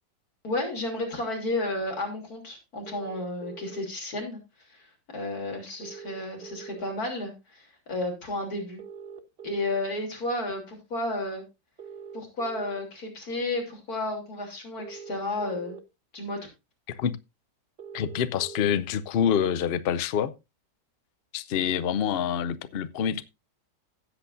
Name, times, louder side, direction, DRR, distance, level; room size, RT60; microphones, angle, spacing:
voice 1, 0.4-4.4 4.7-4.9 5.1-8.8 9.4-11.4 12.1-15.8 16.1-16.4, left 2 dB, 55° left, 3.7 m, -32 dB
sound 1, 2.9-3.8 5.8-6.8 8.8-9.8 11.8-12.8 14.8-15.8 17.8-18.8, right 7 dB, 40° right, 1.1 m, -43 dB
voice 2, 17.9-20.3 21.3-23.2, left 8 dB, 75° left, 0.5 m, -26 dB
16.0 x 8.0 x 2.6 m
omnidirectional pair, 1.9 m